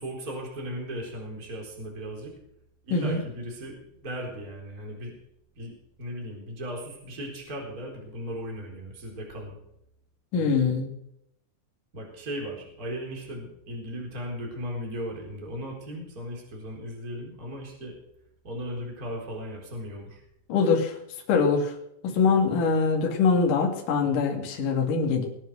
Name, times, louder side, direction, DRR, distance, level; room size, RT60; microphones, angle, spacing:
voice 1, 0.0-2.3 2.8-5.2 5.6-5.7 6.0-9.6 10.4-10.5 11.9-17.9 18.4-20.2, equal, 20° right, 0 dB, 4.2 m, -37 dB
voice 2, 10.3-10.9 20.5-21.0 21.3-21.7 22.0-25.3, left 5 dB, 50° left, 1 dB, 3.5 m, -23 dB
20.5 x 9.1 x 6.4 m, 0.77 s
omnidirectional pair, 5.2 m